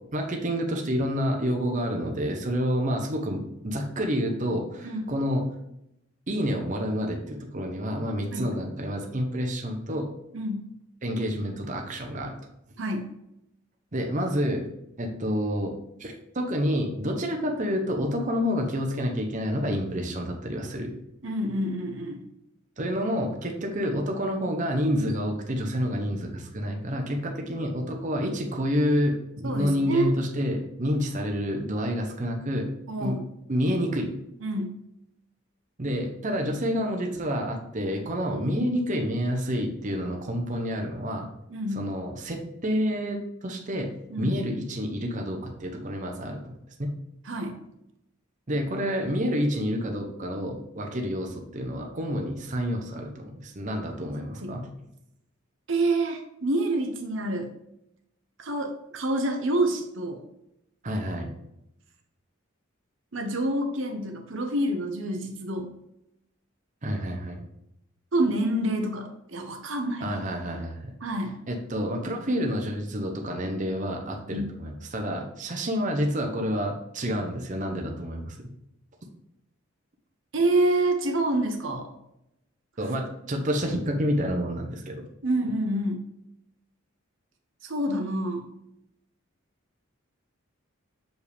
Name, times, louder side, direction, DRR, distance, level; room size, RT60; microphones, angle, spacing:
voice 1, 0.1-5.4 6.3-10.1 11.0-12.4 13.9-14.6 15.0-15.7 16.0-20.9 22.8-32.7 33.0-33.2 33.5-34.1 35.8-41.3 41.7-43.9 44.2-46.4 46.8-46.9 48.5-54.7 60.8-61.3 66.8-67.4 70.0-70.9 71.5-78.4 82.8-85.0, equal, 40° right, 2 dB, 0.8 m, -28 dB
voice 2, 10.3-10.7 12.8-13.1 21.2-22.3 29.4-30.1 32.9-33.2 34.4-34.8 38.3-38.5 41.5-41.9 44.1-44.4 47.2-47.6 54.4-54.6 55.7-57.5 58.4-60.2 63.1-65.7 68.1-70.2 71.0-71.4 74.3-74.5 80.3-81.9 85.2-86.0 87.6-88.5, right 1 dB, 65° right, 4 dB, 0.9 m, -27 dB
6.4 x 4.9 x 3.5 m, 0.82 s
head